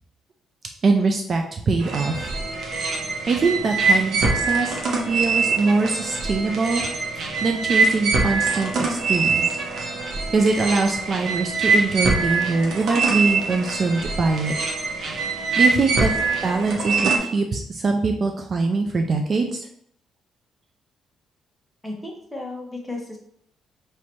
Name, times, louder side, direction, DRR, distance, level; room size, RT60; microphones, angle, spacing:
voice 1, 0.8-2.3 3.3-4.8 5.1-6.9 7.4-9.6 10.3-14.5 15.4-16.1 16.4-19.7, right 3 dB, 40° right, 4 dB, 0.4 m, -23 dB
sound 1, 1.8-17.2, right 4 dB, 60° right, 0.9 m, -23 dB
voice 2, 21.8-23.2, left 2 dB, 5° left, -1 dB, 0.9 m, -34 dB
3.1 x 2.8 x 4.5 m, 0.68 s
cardioid pair, 125°, 0 cm